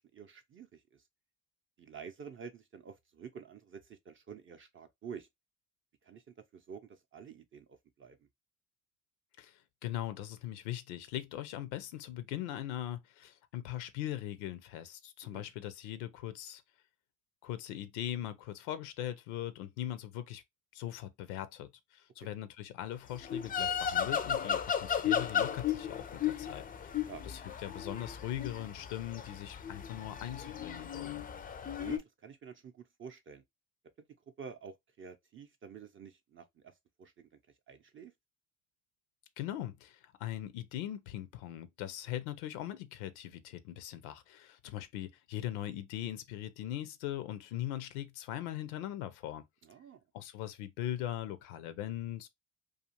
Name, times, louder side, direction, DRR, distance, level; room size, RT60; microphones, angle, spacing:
voice 1, 0.1-1.0 1.8-5.3 6.0-8.3 15.2-15.4 22.2-22.3 27.0-27.2 31.8-33.4 34.4-37.4 37.7-38.1 49.6-50.0, right 7 dB, 35° right, 0.5 m, -49 dB
voice 2, 9.4-16.6 17.4-20.4 20.7-31.3 39.4-49.4 50.1-52.3, left 12 dB, 80° left, 0.6 m, -40 dB
sound 1, 23.1-32.0, left 8 dB, 25° left, 0.4 m, -35 dB
2.4 x 2.4 x 2.8 m
hypercardioid pair, 65°, 38 cm